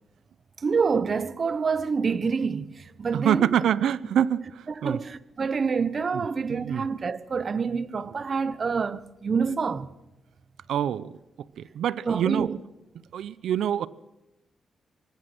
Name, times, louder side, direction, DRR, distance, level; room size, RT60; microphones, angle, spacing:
voice 1, 0.6-3.5 4.8-9.9 12.1-12.6, right 5 dB, 50° right, 1.1 m, -27 dB
voice 2, 3.1-5.0 6.1-6.8 10.7-11.2 11.6-12.5 13.1-13.9, right 10 dB, 85° right, 0.7 m, -26 dB
25.0 x 20.5 x 6.1 m
cardioid pair, 65°, 0 cm